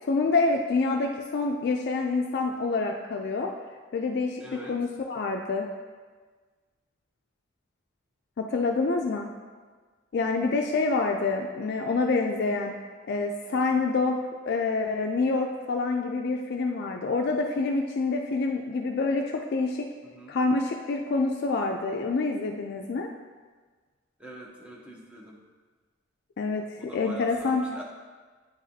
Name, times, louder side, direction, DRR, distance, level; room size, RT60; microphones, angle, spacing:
voice 1, 0.0-3.5 3.9-4.4 4.7-5.7 8.4-9.3 10.1-12.7 13.1-14.2 14.5-19.9 20.3-23.1 26.4-27.8, left 3 dB, 55° left, 2 dB, 0.3 m, -27 dB
voice 2, 4.4-4.8 20.0-20.4 24.2-25.4 26.8-27.8, right 1 dB, 5° right, -2 dB, 0.8 m, -43 dB
9.1 x 4.0 x 2.7 m, 1.5 s
head